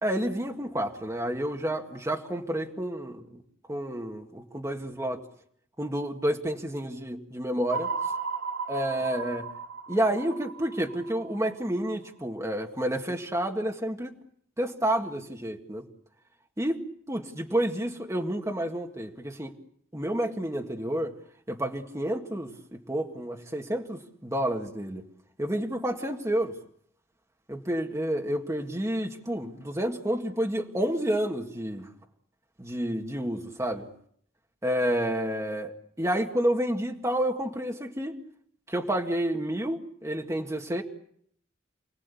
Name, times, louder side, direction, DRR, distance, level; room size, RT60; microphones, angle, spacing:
voice 1, 0.0-3.3 3.7-5.2 5.8-7.9 8.7-9.5 9.9-14.2 14.6-15.8 16.6-19.5 19.9-21.1 21.5-25.0 25.4-26.5 27.5-31.9 32.6-33.9 34.6-38.1 38.7-40.8, right 1 dB, 15° right, 2 dB, 1.9 m, -30 dB
sound 1, 7.7-11.9, right 5 dB, 85° right, 3.7 m, -35 dB
29.5 x 19.0 x 8.4 m, 0.66 s
head